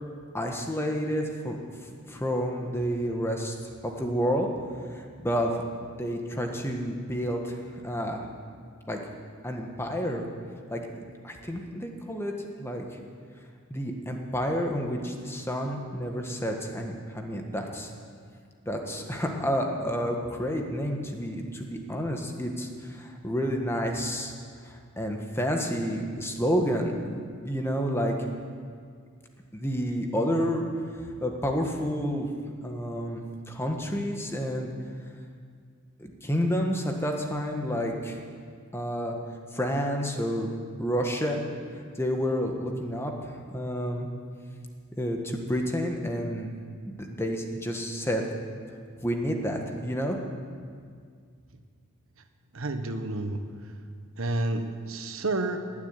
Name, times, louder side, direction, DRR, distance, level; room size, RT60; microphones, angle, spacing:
voice 1, 0.3-1.6 2.0-3.6 3.8-4.5 4.9-5.6 6.0-8.2 8.9-9.0 9.4-10.2 10.7-12.3 12.6-12.8 13.7-17.9 18.6-24.3 24.6-27.2 27.4-28.1 29.5-30.6 31.2-32.3 32.6-34.7 36.0-38.2 38.7-39.1 39.5-40.5 40.8-41.4 42.0-44.1 45.0-46.5 46.8-48.2 49.0-50.2, equal, 10° left, 2 dB, 1.5 m, -30 dB
voice 2, 52.5-53.4 54.2-55.6, right 2 dB, 75° right, 7 dB, 1.3 m, -30 dB
19.0 x 7.3 x 9.7 m, 2.1 s
head